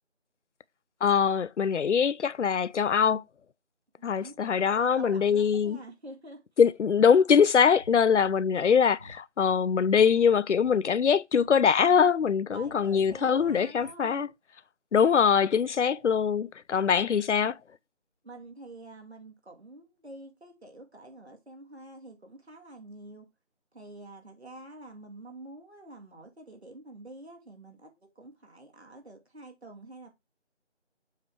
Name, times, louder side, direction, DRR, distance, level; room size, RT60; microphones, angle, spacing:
voice 1, 1.0-3.2 4.0-5.8 6.6-14.3 14.9-17.6, left 7 dB, 85° left, 0.5 m, -23 dB
voice 2, 4.0-4.3 4.8-6.4 12.5-14.3 18.2-23.3 23.7-30.1, right 2 dB, 65° right, 2.1 m, -47 dB
Breathing, 7.7-8.3 8.6-8.7 9.0-10.3 10.6-11.5 11.8-12.7 13.0-13.9, equal, 30° left, 1.2 m, -52 dB
7.3 x 3.5 x 4.4 m
figure-of-eight pair, 175°, 35 cm